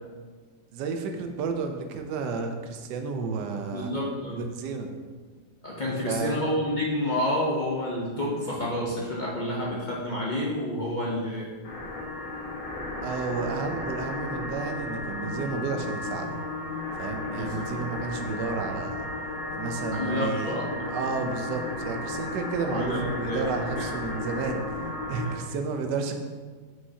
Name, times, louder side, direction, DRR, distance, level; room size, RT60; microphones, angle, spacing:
voice 1, 0.7-4.0 4.3-4.9 6.1-6.4 13.0-16.4 17.0-19.1 19.5-24.6 25.1-26.2, right 4 dB, 70° right, 5 dB, 1.2 m, -32 dB
voice 2, 3.7-4.5 5.6-11.5 17.3-17.7 19.9-21.0 22.7-23.4 25.2-25.3, left 1 dB, 45° left, -5 dB, 0.6 m, -29 dB
sound 1, 11.6-25.4, left 2 dB, 75° left, 1.7 m, -34 dB
7.3 x 5.6 x 2.7 m, 1.5 s
omnidirectional pair, 2.0 m